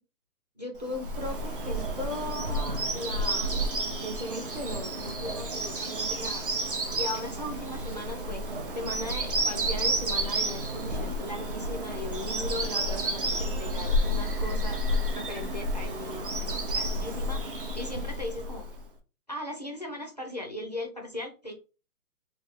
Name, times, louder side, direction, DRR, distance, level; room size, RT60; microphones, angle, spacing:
voice 1, 0.6-6.5 6.9-14.8 15.1-18.7 19.3-21.5, left 1 dB, 30° left, 2 dB, 0.4 m, -38 dB
Bird vocalization bird call bird song, 0.8-18.8, right 1 dB, 40° right, 0.5 m, -31 dB
3.3 x 2.3 x 3.3 m, 0.33 s
hypercardioid pair, 175°, 45 cm